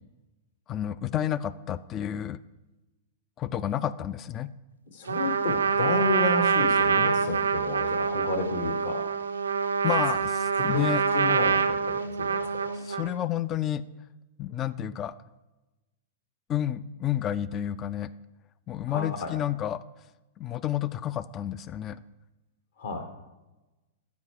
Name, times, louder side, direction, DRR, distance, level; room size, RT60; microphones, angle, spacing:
voice 1, 0.7-2.4 3.4-4.5 9.8-11.0 12.7-13.8 14.4-15.1 16.5-18.1 18.7-19.8 20.4-22.0, left 11 dB, 30° left, 18 dB, 0.3 m, -30 dB
voice 2, 4.9-9.1 10.7-10.9 11.1-12.7 18.9-19.4 22.8-23.0, left 3 dB, 60° left, 6 dB, 1.5 m, -31 dB
Trumpet, 5.1-13.2, right 5 dB, 75° right, 0.4 m, -26 dB
13.5 x 4.8 x 5.0 m, 1.1 s
figure-of-eight pair, 100°, 0 cm